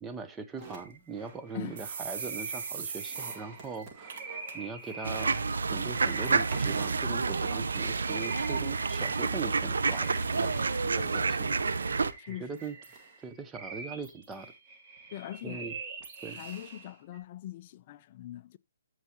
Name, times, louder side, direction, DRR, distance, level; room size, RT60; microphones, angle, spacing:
voice 1, 0.0-4.2 4.5-5.4 5.7-10.1 10.4-11.6 12.3-12.8 13.2-14.5 15.4-15.8 16.2-16.4, right 4 dB, 10° right, 0.7 m, -40 dB
sound 1, 0.6-17.2, right 4 dB, 25° right, 2.0 m, -45 dB
sound 2, 0.8-0.9 1.2-1.3 1.8-3.4 3.7-3.8 4.1-4.5 4.9-5.2 5.9-6.0 6.5-6.6 7.3-7.4, right 6 dB, 50° right, 1.6 m, -38 dB
sound 3, 5.0-12.1, right 4 dB, 85° right, 0.7 m, -29 dB
voice 2, 10.9-11.3 12.2-12.5 15.1-15.8 16.3-18.6, left 13 dB, 35° left, 0.4 m, -42 dB
13.5 x 4.7 x 2.9 m
hypercardioid pair, 155°, 0 cm